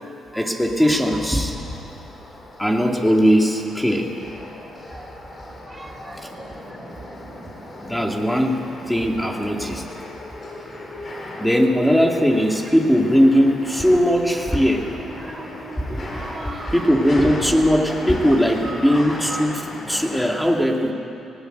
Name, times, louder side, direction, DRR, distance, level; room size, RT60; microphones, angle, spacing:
voice 1, 0.3-1.5 2.6-4.1 7.8-9.8 11.1-14.9 15.8-16.1 16.7-20.9, equal, 5° left, 1 dB, 2.4 m, -19 dB
sound 1, 0.8-20.3, left 1 dB, 40° left, 4.7 m, -36 dB
voice 2, 5.7-6.3 15.2-15.4 16.1-16.8 18.6-18.8, right 3 dB, 25° right, 2 dB, 1.5 m, -38 dB
19.0 x 18.0 x 8.0 m, 2.6 s
cardioid pair, 90°, 0 cm